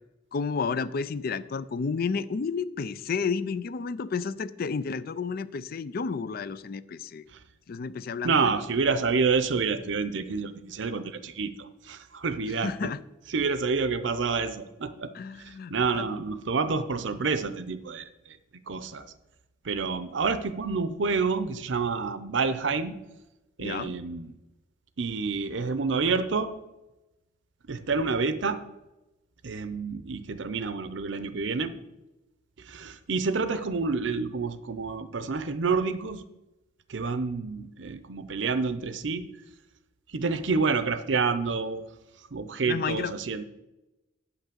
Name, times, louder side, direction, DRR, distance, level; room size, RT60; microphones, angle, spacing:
voice 1, 0.3-7.2 7.7-8.5 12.6-13.0 15.1-16.1 23.6-23.9 42.7-43.1, left 5 dB, 50° left, 16 dB, 0.4 m, -31 dB
voice 2, 8.2-12.7 13.3-15.1 15.4-18.4 18.7-19.1 19.6-23.0 23.6-24.3 25.0-26.5 27.7-28.6 29.4-31.8 32.7-36.2 36.9-39.3 40.1-41.8 42.3-43.4, right 4 dB, 70° right, 12 dB, 0.6 m, -28 dB
8.2 x 5.8 x 6.8 m, 1.0 s
head